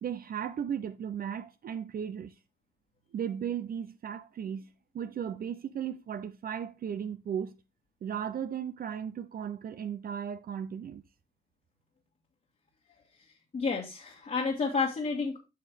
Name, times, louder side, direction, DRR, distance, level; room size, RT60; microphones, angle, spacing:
voice 1, 0.0-2.4 3.1-7.6 8.0-11.0, right 8 dB, 50° right, 0.6 m, -36 dB
voice 2, 13.5-15.4, left 4 dB, 40° left, 1.6 m, -30 dB
8.6 x 5.4 x 3.4 m
cardioid pair, 90°, 20 cm